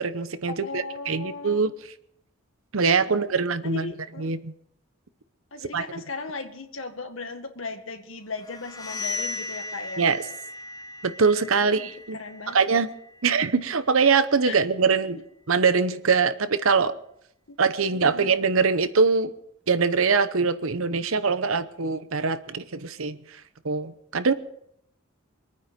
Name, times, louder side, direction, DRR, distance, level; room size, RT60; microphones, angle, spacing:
voice 1, 0.0-1.7 2.7-4.5 5.7-5.8 10.0-10.2 11.0-12.2 12.5-12.9 13.2-16.9 17.6-19.3 19.7-23.2 23.6-24.3, right 5 dB, 85° right, 13 dB, 0.9 m, -23 dB
voice 2, 0.6-1.6 3.1-4.3 5.5-10.1 11.6-11.9 12.1-12.7 14.5-14.6 14.9-15.0 17.5-18.4, left 3 dB, 75° left, 5 dB, 1.9 m, -37 dB
sound 1, 8.4-14.1, left 3 dB, 20° left, 0.9 m, -37 dB
24.0 x 9.4 x 5.2 m, 0.73 s
head